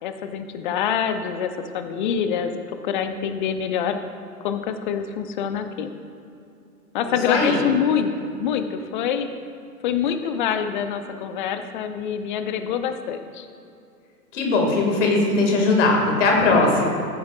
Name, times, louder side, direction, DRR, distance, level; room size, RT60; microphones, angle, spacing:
voice 1, 0.0-2.5 2.8-4.0 4.4-5.9 6.9-9.3 9.8-13.5, left 8 dB, 30° left, 8 dB, 0.6 m, -25 dB
voice 2, 7.1-7.6 14.3-16.9, left 3 dB, 50° left, 0 dB, 2.3 m, -19 dB
15.0 x 9.3 x 2.5 m, 2.6 s
figure-of-eight pair, 110°, 47 cm